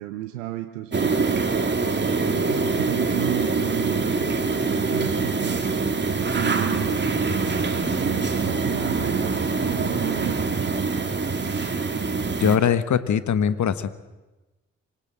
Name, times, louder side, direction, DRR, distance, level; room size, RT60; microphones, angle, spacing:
voice 1, 0.0-1.4 2.3-5.7 6.3-7.6 7.9-10.9, right 15 dB, 80° right, 8 dB, 0.9 m, -32 dB
sound 1, 0.9-12.6, right 4 dB, 30° right, 2.6 m, -24 dB
voice 2, 12.4-13.9, left 8 dB, 50° left, 13 dB, 1.4 m, -21 dB
25.5 x 17.0 x 7.6 m, 1.1 s
figure-of-eight pair, 40°, 37 cm